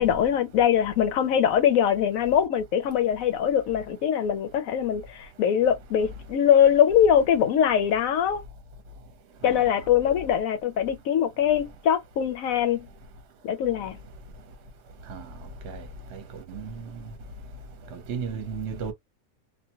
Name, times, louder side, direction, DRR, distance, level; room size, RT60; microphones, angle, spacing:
voice 1, 0.0-8.4 9.4-12.9 13.4-14.0, left 9 dB, 75° left, 1.1 m, -22 dB
voice 2, 17.9-18.9, right 6 dB, 55° right, 0.9 m, -34 dB
2.5 x 2.2 x 2.8 m
omnidirectional pair, 1.5 m